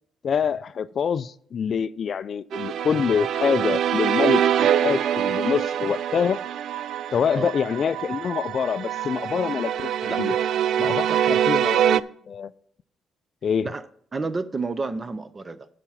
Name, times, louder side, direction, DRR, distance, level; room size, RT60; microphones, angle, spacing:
voice 1, 0.2-6.4 7.1-10.4 10.8-12.5 13.4-13.7, left 7 dB, 45° left, 16 dB, 0.3 m, -26 dB
sound 1, 2.5-12.0, right 10 dB, 70° right, 0.3 m, -24 dB
voice 2, 10.9-11.4 13.6-13.8 14.1-15.7, right 3 dB, 25° right, 13 dB, 0.6 m, -31 dB
11.5 x 5.0 x 5.7 m, 0.63 s
cardioid pair, 120°, 0 cm